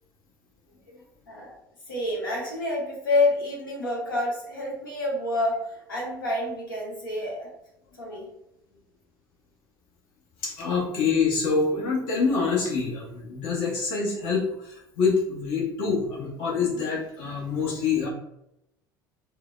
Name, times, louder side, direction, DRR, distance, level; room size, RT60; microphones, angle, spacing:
voice 1, 1.9-7.5 8.0-8.3, left 2 dB, 85° left, -3 dB, 1.0 m, -28 dB
voice 2, 10.4-18.1, left 5 dB, 55° left, -2 dB, 1.0 m, -26 dB
3.7 x 2.1 x 2.4 m, 0.82 s
figure-of-eight pair, 65°, 11 cm